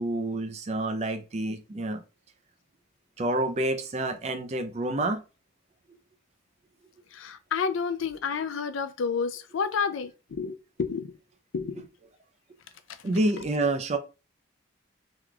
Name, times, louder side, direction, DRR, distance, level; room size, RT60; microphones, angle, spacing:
voice 1, 0.0-2.0 3.2-5.2 13.0-14.0, right 2 dB, 35° right, 0.4 m, -28 dB
voice 2, 7.1-11.1 11.5-11.9, left 5 dB, 85° left, 0.4 m, -30 dB
3.1 x 2.3 x 3.7 m
head